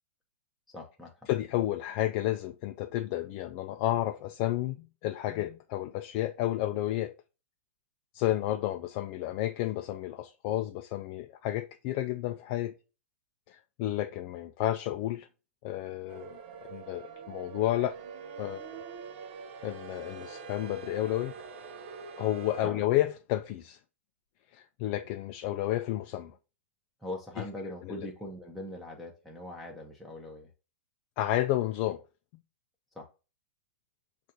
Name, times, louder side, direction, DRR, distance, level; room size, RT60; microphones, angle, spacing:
voice 1, 0.7-1.1 22.6-22.8 27.0-30.5 33.0-33.1, left 1 dB, ahead, 0.7 m, -41 dB
voice 2, 1.3-7.1 8.1-12.7 13.5-15.3 15.6-18.0 18.4-18.6 19.6-21.3 22.2-23.8 24.5-26.4 27.4-27.5 27.8-28.1 31.2-32.0, left 14 dB, 45° left, 0.4 m, -31 dB
sound 1, 16.1-22.7, right 6 dB, 55° right, 0.6 m, -44 dB
6.3 x 2.4 x 2.8 m
hypercardioid pair, 120°, 7 cm